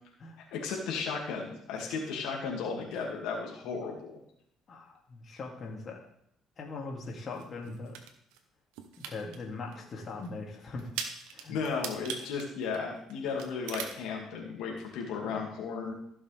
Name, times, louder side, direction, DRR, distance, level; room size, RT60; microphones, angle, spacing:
voice 1, 0.5-4.2 11.5-15.9, left 5 dB, 80° left, -1 dB, 2.3 m, -35 dB
voice 2, 4.7-6.0 6.6-7.9 9.0-10.9 11.3-11.6 15.3-15.4, left 3 dB, 45° left, -1 dB, 2.6 m, -40 dB
sound 1, 7.4-8.4 8.7-9.4 9.7-9.8 10.2-10.3 10.8-13.1 13.4-14.0, right 7 dB, 90° right, 1.1 m, -39 dB
15.0 x 6.5 x 3.5 m, 0.72 s
cardioid pair, 95°, 0 cm